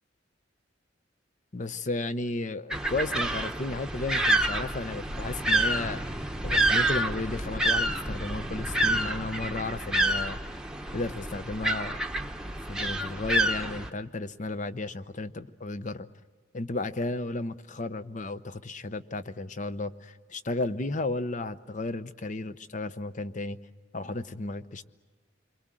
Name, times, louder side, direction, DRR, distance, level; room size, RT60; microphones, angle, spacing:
voice 1, 1.5-6.0 6.4-10.4 10.9-12.0 12.7-16.1 16.5-23.6 23.9-24.8, left 2 dB, 40° left, 13 dB, 0.8 m, -33 dB
sound 1, 2.7-13.9, right 1 dB, 5° right, 1.0 m, -28 dB
28.0 x 23.0 x 7.6 m, 1.4 s
head